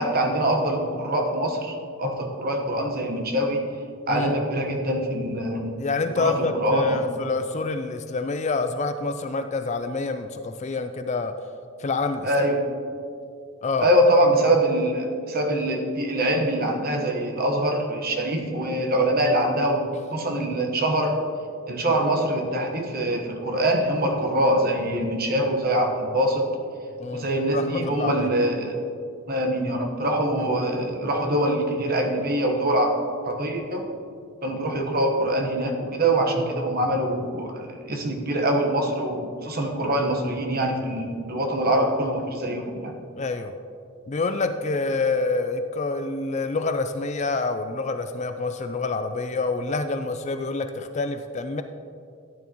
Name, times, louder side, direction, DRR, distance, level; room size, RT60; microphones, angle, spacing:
voice 1, 0.0-3.6 4.1-5.7 6.2-7.0 12.2-12.6 13.8-19.8 20.1-21.2 21.7-26.5 27.1-28.8 29.3-32.9 33.2-33.8 34.4-42.9, right 1 dB, 45° right, 2 dB, 1.2 m, -24 dB
voice 2, 5.8-11.3 11.8-12.3 13.6-13.9 27.0-28.3 30.4-30.5 43.2-43.5 44.1-51.6, left 3 dB, 30° left, 8 dB, 0.3 m, -27 dB
14.0 x 9.3 x 3.0 m, 2.5 s
head